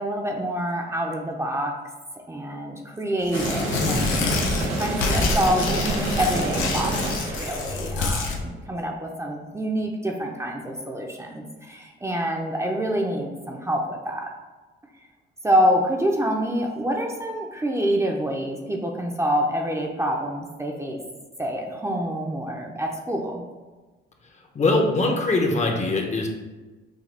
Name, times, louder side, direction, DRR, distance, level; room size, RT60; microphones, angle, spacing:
voice 1, 0.0-1.8 2.3-14.3 15.4-21.0 21.4-23.4, equal, 15° right, 0 dB, 0.6 m, -26 dB
Tearing, 3.2-8.4, left 3 dB, 85° left, 0.7 m, -27 dB
sound 1, 3.3-8.2, right 2 dB, 85° right, 1.0 m, -28 dB
voice 2, 24.5-26.3, left 2 dB, 35° left, 2 dB, 0.8 m, -22 dB
6.3 x 2.2 x 3.4 m, 1.2 s
cardioid pair, 90°, 20 cm